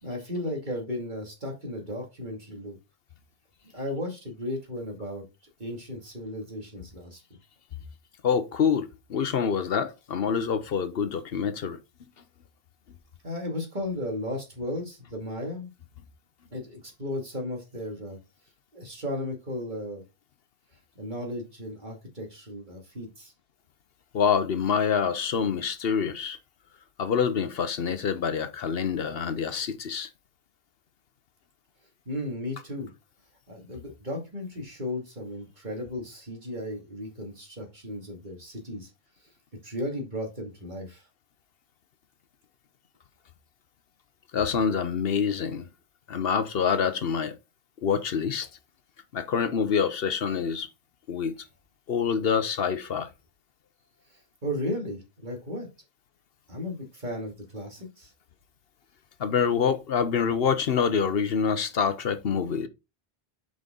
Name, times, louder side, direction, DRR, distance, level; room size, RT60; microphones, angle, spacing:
voice 1, 0.0-2.8 3.7-5.2 5.6-7.2 13.2-15.7 16.5-18.2 18.7-20.0 21.0-23.3 32.1-32.9 33.5-38.9 39.6-41.0 54.4-55.7 56.5-58.1, left 1 dB, 50° right, 2.5 m, -35 dB
voice 2, 8.2-11.8 24.1-26.4 27.0-30.1 44.3-45.7 46.1-47.4 47.8-48.5 49.1-50.7 51.1-51.3 51.9-53.1 59.2-62.7, left 6 dB, 70° left, 1.0 m, -26 dB
6.2 x 5.4 x 3.8 m
omnidirectional pair, 1.0 m